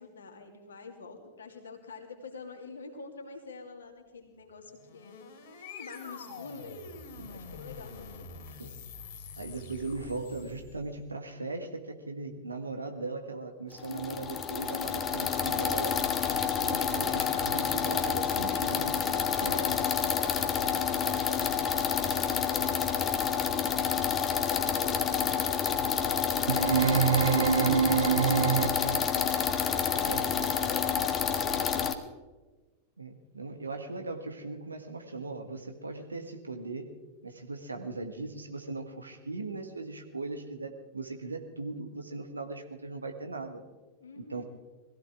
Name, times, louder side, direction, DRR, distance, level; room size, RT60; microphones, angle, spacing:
voice 1, 0.0-5.3 5.7-6.8 7.3-8.3 13.9-14.2 14.6-15.1 16.7-17.1 19.3-23.6 24.3-32.1 44.0-44.4, left 4 dB, 70° left, 3 dB, 2.5 m, -45 dB
sound 1, 4.7-11.0, left 4 dB, 50° left, 2.9 m, -46 dB
voice 2, 9.4-16.1 16.6-19.5 24.7-24.8 29.9-30.5 33.0-36.9 37.2-43.6 44.3-44.4, right 3 dB, 80° right, 5 dB, 1.7 m, -39 dB
sound 2, 13.8-31.9, left 7 dB, 25° left, 1.3 m, -29 dB
sound 3, 26.5-29.1, right 8 dB, 65° right, 0.6 m, -25 dB
22.0 x 16.0 x 3.7 m, 1.2 s
figure-of-eight pair, 90°, 0 cm